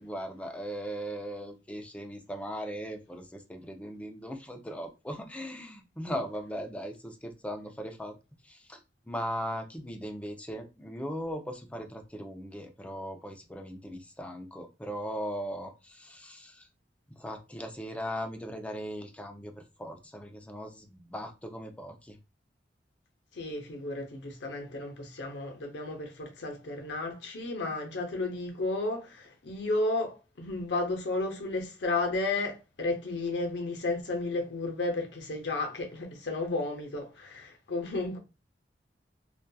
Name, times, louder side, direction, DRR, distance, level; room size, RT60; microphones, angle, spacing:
voice 1, 0.0-8.2 8.4-8.8 9.1-16.7 17.1-22.2, equal, 10° left, 0.4 m, -38 dB
voice 2, 23.3-38.2, left 2 dB, 80° left, 0.7 m, -33 dB
2.7 x 2.3 x 2.2 m
head